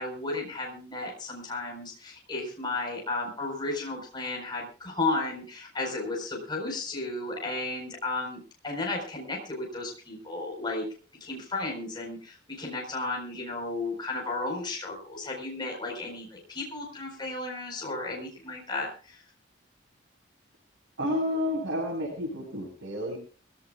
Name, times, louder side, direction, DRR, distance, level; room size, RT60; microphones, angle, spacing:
voice 1, 0.0-10.9 11.2-19.2, left 2 dB, 25° left, -1 dB, 4.6 m, -34 dB
voice 2, 21.0-23.2, left 1 dB, 85° right, -1 dB, 7.1 m, -30 dB
22.5 x 17.0 x 2.4 m, 0.38 s
head